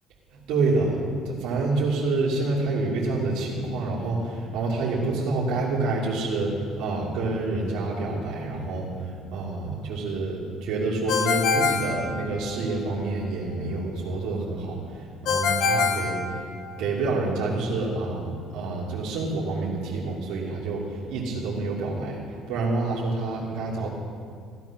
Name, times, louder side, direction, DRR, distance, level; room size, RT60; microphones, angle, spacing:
voice 1, 0.5-1.0 1.2-16.2 16.8-22.2 22.5-23.9, right 3 dB, 75° right, -5 dB, 2.8 m, -27 dB
Ringtone, 11.1-12.8 15.3-16.9, left 5 dB, 60° left, 1.6 m, -25 dB
16.0 x 11.0 x 6.0 m, 2.2 s
cardioid pair, 140°, 0 cm